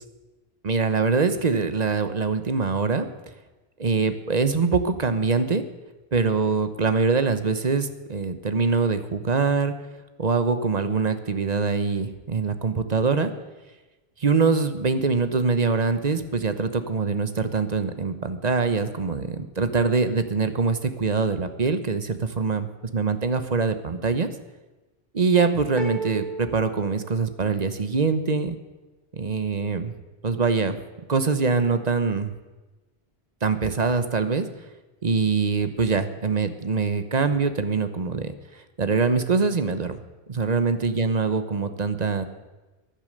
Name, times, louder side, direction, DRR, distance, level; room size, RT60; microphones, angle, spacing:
voice 1, 0.6-3.1 3.8-5.6 6.1-9.7 10.2-13.3 14.2-24.3 25.1-28.6 29.1-29.9 30.2-30.8 31.1-32.3 33.4-34.5 35.0-38.3 38.8-40.0 40.3-42.2, right 4 dB, 40° right, 10 dB, 1.1 m, -23 dB
sound 1, 25.8-27.8, right 3 dB, ahead, 2.9 m, -35 dB
15.0 x 11.0 x 6.6 m, 1.2 s
omnidirectional pair, 1.1 m